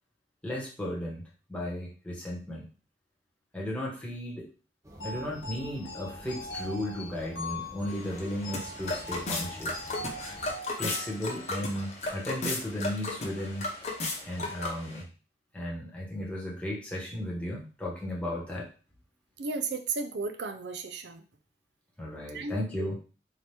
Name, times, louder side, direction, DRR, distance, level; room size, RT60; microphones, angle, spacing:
voice 1, 0.4-1.2 1.5-2.6 3.5-4.5 5.0-9.9 10.8-13.7 14.2-15.1 15.5-18.7 22.0-23.0, left 1 dB, 5° left, -4 dB, 1.1 m, -35 dB
sound 1, 4.8-10.5, equal, 15° right, 0.6 m, -49 dB
sound 2, 5.0-11.9, left 1 dB, 85° left, 0.9 m, -42 dB
sound 3, 7.9-15.0, left 2 dB, 35° left, 0.9 m, -35 dB
voice 2, 19.4-21.2 22.3-22.9, right 4 dB, 70° right, 7 dB, 0.4 m, -34 dB
4.2 x 2.9 x 3.3 m, 0.36 s
head